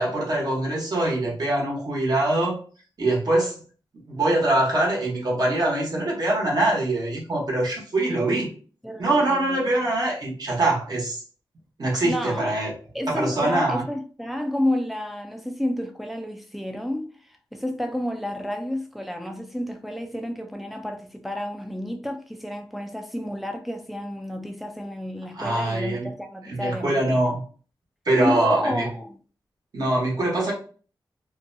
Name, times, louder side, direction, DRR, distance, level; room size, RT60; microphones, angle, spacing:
voice 1, 0.0-2.6 3.0-3.5 4.1-8.5 9.0-11.2 11.8-12.7 13.1-13.8 25.4-26.1 26.5-27.4 28.0-28.9 29.7-30.5, right 2 dB, 50° right, 1.1 m, -23 dB
voice 2, 8.1-8.5 8.8-9.7 12.0-12.5 12.9-27.3 28.2-29.2, left 1 dB, ahead, 0.3 m, -30 dB
2.6 x 2.2 x 2.6 m
wide cardioid pair, 90°, 8 cm